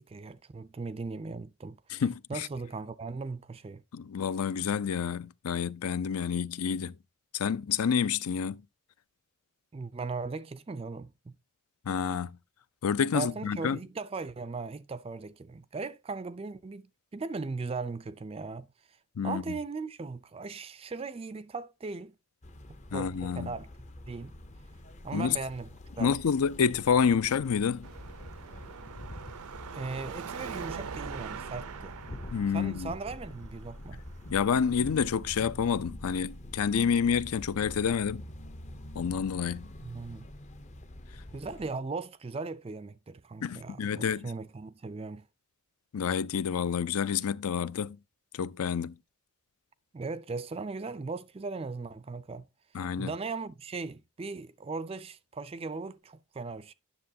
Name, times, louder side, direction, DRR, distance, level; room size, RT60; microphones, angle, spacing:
voice 1, 0.0-2.0 2.3-3.8 9.7-11.3 13.1-16.8 17.1-18.7 19.2-22.1 22.9-23.7 24.1-24.4 25.0-25.7 26.0-26.1 29.7-32.0 32.5-34.0 39.8-40.3 41.3-45.2 49.9-52.5 53.0-56.7, right 4 dB, 25° right, 0.3 m, -38 dB
voice 2, 1.9-2.5 3.9-6.9 7.3-8.6 11.9-12.3 12.8-13.8 19.2-19.6 22.9-23.5 25.1-25.4 26.0-27.9 32.3-32.9 34.3-38.2 39.0-39.7 43.4-44.3 45.9-48.0 48.3-49.0 52.7-53.1, left 6 dB, 80° left, 0.5 m, -28 dB
sound 1, 22.4-41.7, left 1 dB, 30° left, 0.5 m, -46 dB
Car passing by / Traffic noise roadway noise / Engine, 27.8-35.2, right 6 dB, 85° right, 0.5 m, -43 dB
9.9 x 6.8 x 2.7 m
head